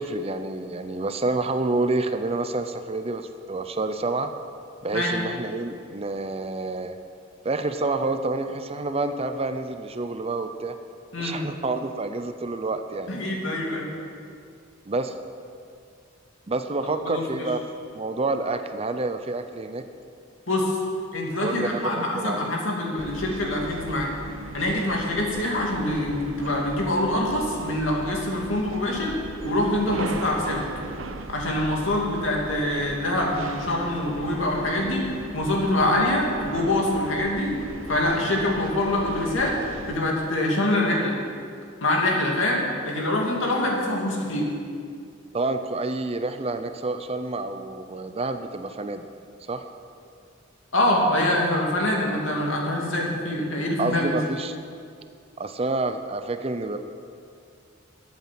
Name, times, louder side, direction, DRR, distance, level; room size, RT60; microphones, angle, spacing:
voice 1, 0.0-4.3 4.8-6.9 7.4-10.7 11.2-13.1 14.9-15.2 16.5-17.6 17.9-19.8 21.4-22.5 45.3-49.1 49.5-49.7 53.1-53.3 53.8-54.6 55.4-56.8, right 2 dB, 30° right, 9 dB, 0.6 m, -28 dB
voice 2, 13.1-13.9 17.0-17.5 20.5-20.8 21.1-24.1 24.5-30.7 31.3-37.6 37.9-39.6 39.9-41.1 41.8-44.5 50.7-54.2, left 1 dB, 70° left, -1 dB, 2.7 m, -25 dB
sound 1, 23.0-40.0, right 3 dB, 75° right, 0.8 m, -38 dB
12.5 x 8.3 x 7.7 m, 2.3 s
head